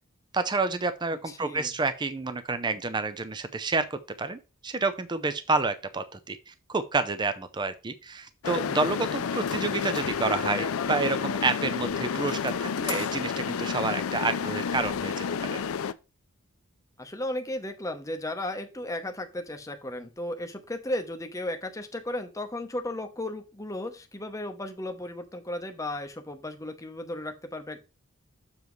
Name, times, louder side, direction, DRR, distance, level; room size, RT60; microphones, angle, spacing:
voice 1, 0.3-15.6, right 3 dB, 20° right, 10 dB, 0.5 m, -29 dB
voice 2, 1.3-1.7 17.0-27.8, left 1 dB, 15° left, 6 dB, 0.9 m, -35 dB
sound 1, 8.4-15.9, left 6 dB, 70° left, 0.5 m, -30 dB
7.2 x 6.6 x 3.1 m, 0.31 s
head